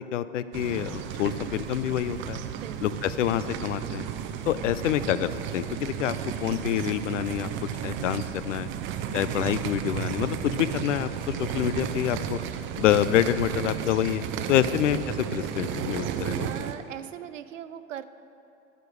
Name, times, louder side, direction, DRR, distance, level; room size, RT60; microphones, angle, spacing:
voice 1, 0.0-2.4 2.8-4.1 4.5-6.1 6.4-7.5 7.8-8.7 9.1-12.4 12.8-16.5, left 11 dB, 75° left, 14 dB, 0.5 m, -27 dB
sound 1, 0.5-16.7, right 9 dB, 30° right, 0.5 m, -33 dB
voice 2, 2.5-2.8 16.4-18.1, right 10 dB, 80° right, 13 dB, 0.5 m, -39 dB
sound 2, 5.3-11.2, left 2 dB, 30° left, 1.9 m, -54 dB
9.0 x 5.0 x 6.5 m, 2.8 s
hypercardioid pair, 90°, 38 cm